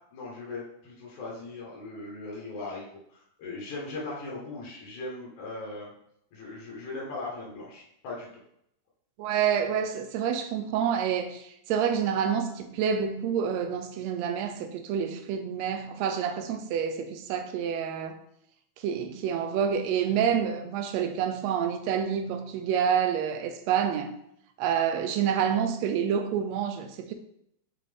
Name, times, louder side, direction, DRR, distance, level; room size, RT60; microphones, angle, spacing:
voice 1, 0.1-2.8 3.1-5.9 6.3-8.3, left 2 dB, 90° left, 2.9 m, -39 dB
voice 2, 9.2-18.2 18.8-24.1 24.6-27.1, right 8 dB, 80° right, 1.7 m, -28 dB
7.3 x 3.8 x 3.4 m
omnidirectional pair, 3.4 m